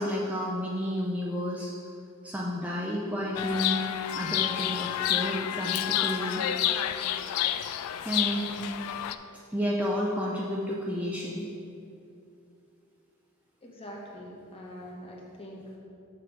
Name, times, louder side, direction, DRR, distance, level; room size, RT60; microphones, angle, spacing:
voice 1, 0.0-1.7 2.2-3.8 4.1-6.4 8.0-8.8 9.5-11.5, equal, 5° right, -4 dB, 0.4 m, -31 dB
Chirp tweet, 3.3-9.1, left 11 dB, 80° left, 0.3 m, -29 dB
voice 2, 13.6-15.8, equal, 25° left, -2 dB, 1.0 m, -43 dB
6.8 x 6.5 x 3.7 m, 2.7 s
head